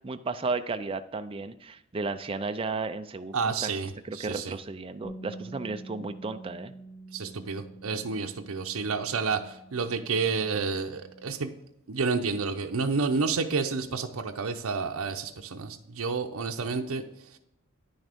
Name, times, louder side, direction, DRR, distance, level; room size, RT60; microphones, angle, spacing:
voice 1, 0.0-3.7 4.0-6.7, right 3 dB, 25° right, 8 dB, 0.4 m, -34 dB
voice 2, 3.3-4.6 7.1-11.5 11.9-17.1, right 4 dB, 70° right, 5 dB, 0.7 m, -30 dB
Bass guitar, 5.0-11.3, right 2 dB, 40° left, 1.8 m, -47 dB
9.9 x 6.3 x 3.5 m, 0.86 s
head